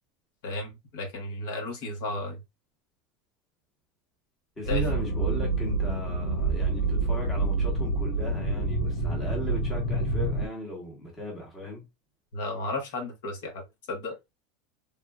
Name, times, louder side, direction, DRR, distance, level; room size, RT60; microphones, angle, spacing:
voice 1, 0.4-2.4 4.7-4.8 12.3-14.2, left 2 dB, 70° left, 1.2 m, -34 dB
sound 1, 4.6-10.5, right 3 dB, 45° left, 0.8 m, -27 dB
voice 2, 4.6-11.8, left 1 dB, 15° left, 1.2 m, -37 dB
3.5 x 2.6 x 2.3 m
supercardioid pair, 170°, 0 cm